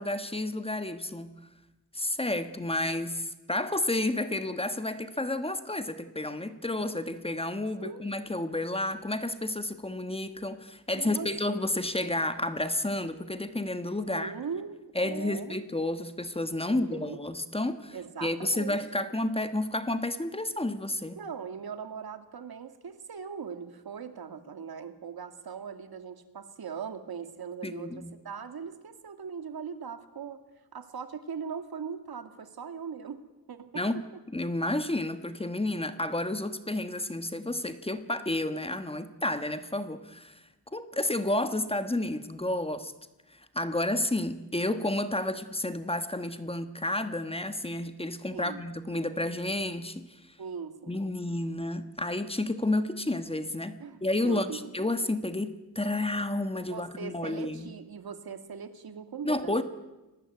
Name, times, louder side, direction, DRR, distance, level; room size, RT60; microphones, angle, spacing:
voice 1, 0.0-1.3 1.9-14.3 14.9-21.2 27.6-28.1 33.7-34.0 34.3-40.4 40.7-42.9 43.3-50.2 50.9-53.8 54.0-57.7 59.2-59.6, left 1 dB, 15° left, 10 dB, 1.3 m, -31 dB
voice 2, 11.0-11.3 14.1-15.6 16.7-17.2 17.9-19.1 21.2-30.4 30.7-33.2 33.5-34.2 48.3-48.6 50.4-51.0 53.8-54.7 56.7-59.6, right 6 dB, 75° right, 9 dB, 2.3 m, -40 dB
30.0 x 19.5 x 9.4 m, 1.1 s
wide cardioid pair, 175°, 37 cm